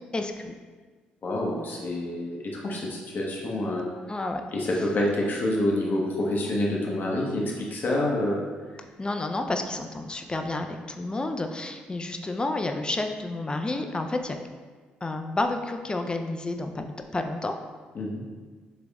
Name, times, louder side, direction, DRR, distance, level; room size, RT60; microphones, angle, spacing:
voice 1, 0.1-0.5 4.1-4.4 9.0-14.4 15.0-17.5, left 2 dB, 20° left, 5 dB, 0.4 m, -30 dB
voice 2, 1.2-3.9 4.5-8.4 17.9-18.2, left 1 dB, 50° left, -2 dB, 0.8 m, -27 dB
3.9 x 3.3 x 2.3 m, 1.4 s
hypercardioid pair, 50°, 4 cm